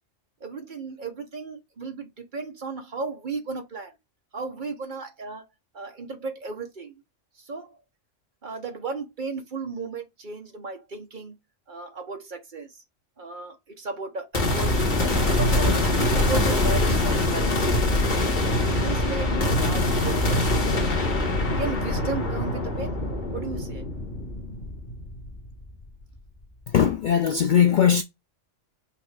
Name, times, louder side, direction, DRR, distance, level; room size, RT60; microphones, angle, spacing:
voice 1, 0.4-3.9 4.3-5.5 5.7-6.9 7.5-7.8 8.4-11.4 11.7-12.7 13.2-14.8 15.1-17.8 18.6-20.8 21.6-23.0 23.3-23.8, right 4 dB, 45° right, 1.0 m, -35 dB
sound 1, 14.3-25.7, left 2 dB, 40° left, 1.5 m, -24 dB
voice 2, 26.7-28.0, left 8 dB, 60° left, 0.5 m, -19 dB
5.7 x 2.5 x 3.2 m
omnidirectional pair, 1.2 m